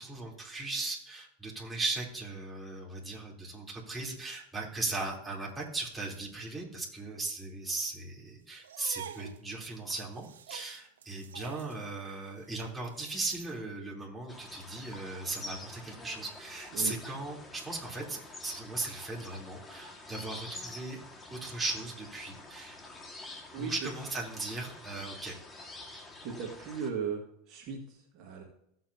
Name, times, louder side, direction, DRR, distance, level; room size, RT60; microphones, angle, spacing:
voice 1, 0.0-21.0 21.3-22.8 23.5-25.4, right 3 dB, 15° right, -3 dB, 3.5 m, -37 dB
sound 1, 8.6-13.6, right 9 dB, 85° right, 0.6 m, -48 dB
sound 2, 14.3-26.9, left 2 dB, 20° left, 1.9 m, -47 dB
voice 2, 26.2-27.2 27.5-28.4, right 6 dB, 50° right, -1 dB, 2.0 m, -37 dB
15.5 x 7.9 x 2.9 m, 0.76 s
hypercardioid pair, 100°, 0 cm